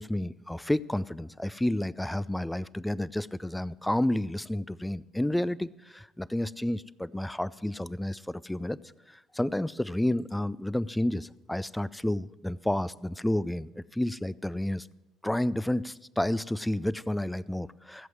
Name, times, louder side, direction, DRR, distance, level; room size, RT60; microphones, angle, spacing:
voice 1, 0.0-8.8 9.1-14.9 15.2-18.1, left 1 dB, 5° left, 19 dB, 0.4 m, -30 dB
15.0 x 7.9 x 7.5 m, 0.99 s
figure-of-eight pair, 55°, 0 cm